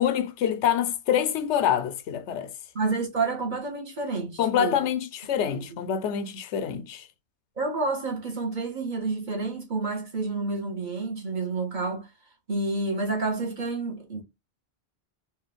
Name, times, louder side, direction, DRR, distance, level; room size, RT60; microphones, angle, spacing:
voice 1, 0.0-2.5 4.4-7.1, left 9 dB, 85° left, 0.9 m, -26 dB
voice 2, 2.7-4.8 5.3-5.8 7.6-12.1 12.5-14.2, right 3 dB, 45° right, 1.3 m, -29 dB
4.4 x 2.6 x 3.3 m
omnidirectional pair, 1.1 m